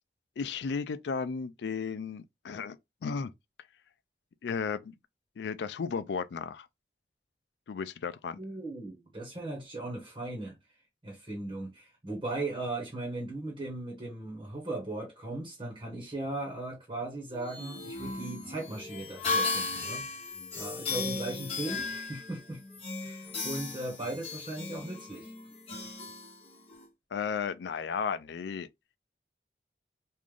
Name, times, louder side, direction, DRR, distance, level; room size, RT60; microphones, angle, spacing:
voice 1, 0.4-2.8 3.0-3.3 4.4-4.9 5.4-6.7 7.7-8.4 27.1-28.7, left 5 dB, 80° left, 0.4 m, -34 dB
voice 2, 8.4-10.6 11.0-20.1 20.5-22.6 23.0-25.3, right 2 dB, 25° right, 1.1 m, -38 dB
sound 1, 17.3-26.9, left 3 dB, 35° left, 1.1 m, -36 dB
3.2 x 2.5 x 3.6 m
head